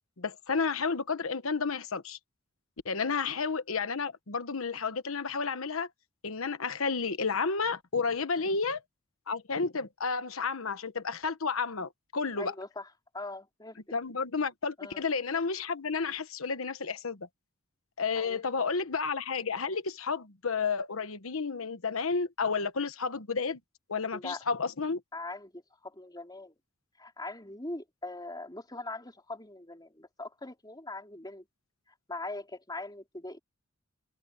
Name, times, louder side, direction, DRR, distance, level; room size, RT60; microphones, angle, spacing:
voice 1, 0.2-2.2 2.8-5.9 6.2-8.8 9.3-12.5 13.9-17.3 18.0-23.6 23.9-25.0, left 5 dB, 80° left, 1.2 m, -31 dB
voice 2, 12.4-12.9 13.1-13.8 14.8-15.0 18.2-18.4 24.1-24.4 25.1-26.5 27.0-31.4 32.1-33.4, left 2 dB, 20° left, 3.6 m, -41 dB
head